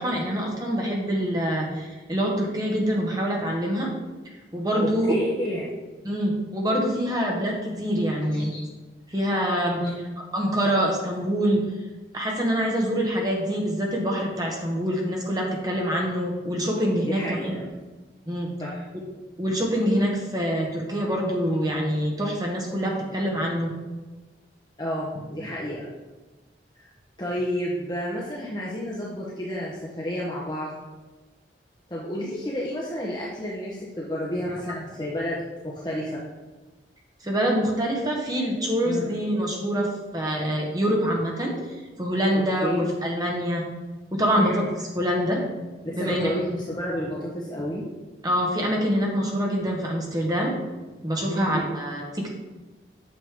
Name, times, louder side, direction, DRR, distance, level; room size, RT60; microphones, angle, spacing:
voice 1, 0.0-3.9 4.5-5.2 6.0-8.5 9.1-9.8 10.3-11.7 12.1-17.6 18.3-18.5 19.4-23.7 34.6-34.7 37.2-41.6 42.0-43.6 44.1-44.6 44.9-45.4 46.0-46.3 48.2-50.5 51.0-52.3, equal, 20° right, -1 dB, 1.4 m, -25 dB
voice 2, 4.8-5.7 8.4-8.6 9.8-9.9 17.0-17.6 18.6-18.8 24.8-25.9 26.8-26.9 27.2-30.7 31.9-36.2 38.8-39.0 42.3-42.8 44.3-44.7 45.8-47.8 51.3-51.5, equal, 25° left, -5 dB, 1.2 m, -30 dB
8.8 x 6.7 x 3.7 m, 1.2 s
head